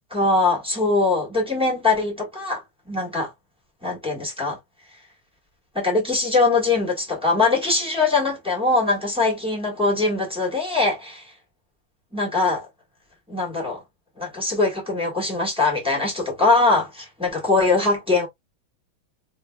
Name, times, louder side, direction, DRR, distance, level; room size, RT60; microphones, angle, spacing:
voice 1, 0.1-2.6 2.9-3.3 3.8-4.6 5.7-11.2 12.1-12.6 13.3-13.8 14.2-18.3, left 3 dB, 5° right, 1.1 m, -22 dB
3.3 x 2.6 x 2.2 m
omnidirectional pair, 2.3 m